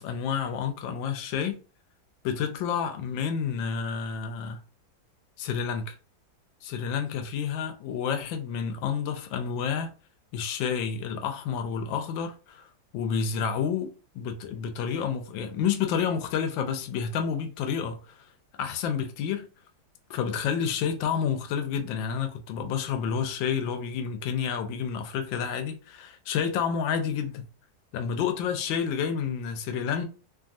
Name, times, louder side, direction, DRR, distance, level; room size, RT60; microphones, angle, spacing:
voice 1, 0.0-1.6 2.2-4.6 5.4-5.9 6.6-9.9 10.3-12.6 12.9-18.2 18.6-19.5 20.1-27.4 27.9-30.1, left 7 dB, 85° left, 1.3 m, -29 dB
3.1 x 2.3 x 2.5 m
omnidirectional pair, 2.0 m